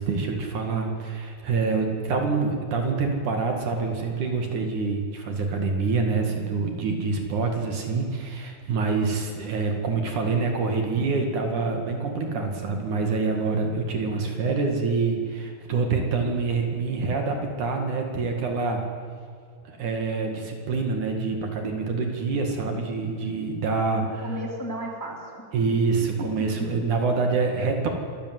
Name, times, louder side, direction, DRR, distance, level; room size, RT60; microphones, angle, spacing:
voice 1, 0.0-18.8 19.6-24.3 25.5-27.9, right 4 dB, 55° right, 3 dB, 3.3 m, -26 dB
voice 2, 23.2-23.7 24.0-25.5 26.2-26.7, left 1 dB, 5° left, 1 dB, 2.4 m, -35 dB
26.0 x 14.0 x 9.5 m, 2.1 s
omnidirectional pair, 4.4 m